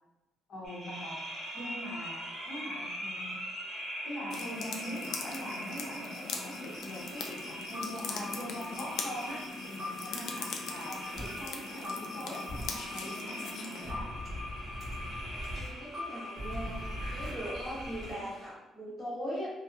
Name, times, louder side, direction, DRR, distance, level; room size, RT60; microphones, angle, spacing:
voice 1, 0.5-3.4 4.0-14.1, equal, 45° left, -5 dB, 0.9 m, -43 dB
sound 1, 0.6-18.5, left 1 dB, 40° right, 0.9 m, -41 dB
sound 2, 4.3-13.9, left 4 dB, 65° left, 0.3 m, -41 dB
sound 3, 11.2-11.3 12.5-12.7 13.8-15.7 16.4-18.1, equal, 20° right, 1.1 m, -40 dB
voice 2, 15.5-19.5, equal, 20° left, -9 dB, 0.9 m, -40 dB
2.8 x 2.1 x 2.4 m, 0.97 s
cardioid pair, 165°, 0 cm